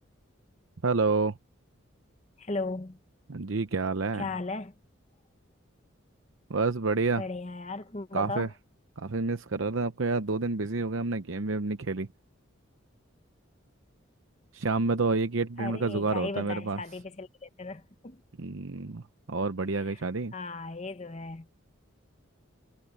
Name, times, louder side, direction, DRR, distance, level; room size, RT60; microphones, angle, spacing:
voice 1, 0.8-1.3 3.3-4.3 6.5-7.2 8.1-8.5 9.0-12.1 14.5-16.8 18.4-19.0 19.3-20.3, right 3 dB, 70° right, 0.8 m, -28 dB
voice 2, 2.4-3.0 4.1-4.7 7.2-8.5 15.6-18.2 19.8-20.0 20.3-21.5, left 3 dB, 30° left, 0.8 m, -36 dB
head